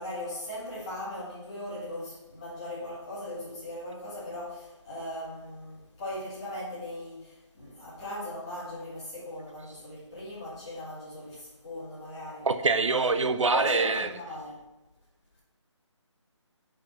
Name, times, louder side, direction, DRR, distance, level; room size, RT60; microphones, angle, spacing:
voice 1, 0.0-12.5 12.9-13.1 13.5-14.6, left 1 dB, 10° left, -12 dB, 1.6 m, -38 dB
voice 2, 12.4-14.1, right 4 dB, 85° right, 9 dB, 0.6 m, -24 dB
5.2 x 4.8 x 5.5 m, 1.0 s
figure-of-eight pair, 180°, 16 cm